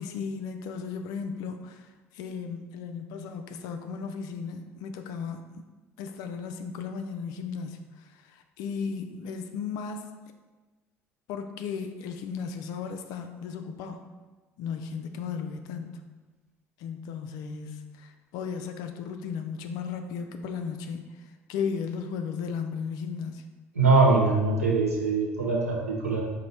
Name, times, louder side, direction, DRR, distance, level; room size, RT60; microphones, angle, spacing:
voice 1, 0.0-1.9 2.1-5.5 6.0-7.8 8.1-10.0 11.3-14.0 14.6-16.0 16.8-21.0 21.5-23.5, left 6 dB, 55° left, 6 dB, 0.3 m, -35 dB
voice 2, 23.7-26.2, right 3 dB, 85° right, -3 dB, 0.8 m, -22 dB
4.1 x 2.6 x 4.1 m, 1.3 s
figure-of-eight pair, 60°, 8 cm